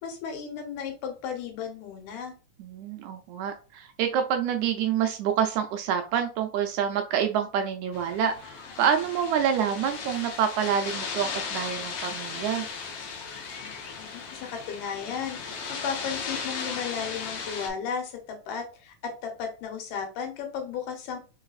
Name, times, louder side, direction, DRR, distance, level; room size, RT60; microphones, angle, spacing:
voice 1, 0.0-2.3 14.1-21.2, left 6 dB, 85° left, 3 dB, 2.7 m, -34 dB
voice 2, 2.6-12.7, right 8 dB, 80° right, 5 dB, 1.8 m, -27 dB
sound 1, 7.9-17.7, left 5 dB, 65° left, 1.6 m, -36 dB
4.7 x 3.9 x 2.4 m, 0.35 s
omnidirectional pair, 3.7 m